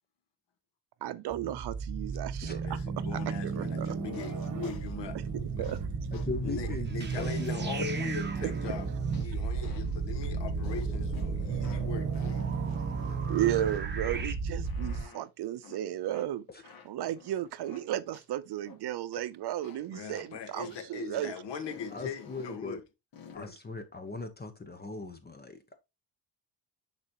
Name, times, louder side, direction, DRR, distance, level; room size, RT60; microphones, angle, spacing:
voice 1, 1.0-2.8 3.4-4.0 5.6-5.9 13.3-16.4 16.9-21.3, right 12 dB, 65° right, 0.6 m, -34 dB
sound 1, 1.3-15.0, right 5 dB, 45° right, 1.6 m, -33 dB
voice 2, 2.4-5.7 6.4-12.5 19.9-22.8 23.3-23.5, left 6 dB, 75° left, 1.5 m, -41 dB
sound 2, 4.1-4.3 4.6-4.9 5.6-5.8 6.1-6.3 6.6-6.8 7.1-8.2 8.6-9.3 9.6-10.0 10.6-11.3 11.6-11.9 12.1-13.8 14.1-14.3 14.6-15.2 15.6-15.8 16.1-16.3 16.6-17.8 18.1-18.3 18.6-18.8 19.1-19.3 19.6-19.9 20.1-20.3 20.6-20.9 21.1-21.3 21.6-22.6 23.1-23.4, left 6 dB, 50° left, 1.7 m, -52 dB
voice 3, 6.1-7.9 16.5-16.6 21.9-22.8 23.3-25.8, left 3 dB, 20° left, 1.0 m, -39 dB
sound 3, 6.9-14.3, right 5 dB, 25° right, 1.3 m, -44 dB
10.0 x 4.1 x 2.9 m
cardioid pair, 140°, 43 cm